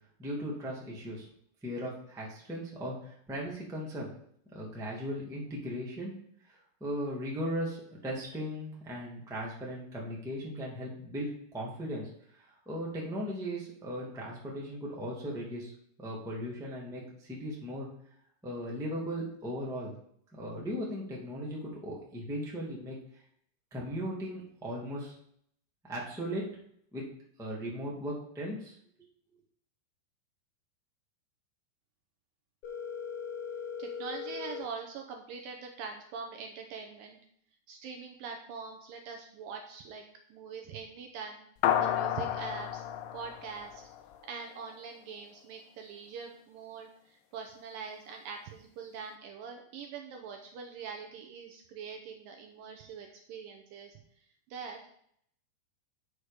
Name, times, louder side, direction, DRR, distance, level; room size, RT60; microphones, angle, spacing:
voice 1, 0.2-1.3 1.6-4.1 4.5-6.2 6.5-15.7 16.0-17.9 18.4-19.9 20.3-23.2 23.7-25.1 25.8-26.5 26.9-27.0 27.4-28.7, equal, ahead, -4 dB, 0.9 m, -37 dB
Telephone, 32.6-34.6, left 7 dB, 60° left, 3.5 m, -39 dB
voice 2, 33.8-37.2 37.7-40.0 40.3-41.4 41.8-42.8 43.1-43.8 44.3-54.0 54.5-54.8, right 5 dB, 75° right, 3 dB, 2.2 m, -43 dB
sound 1, 41.6-44.3, left 10 dB, 85° left, 2.0 m, -31 dB
8.4 x 6.4 x 5.1 m, 0.68 s
omnidirectional pair, 4.6 m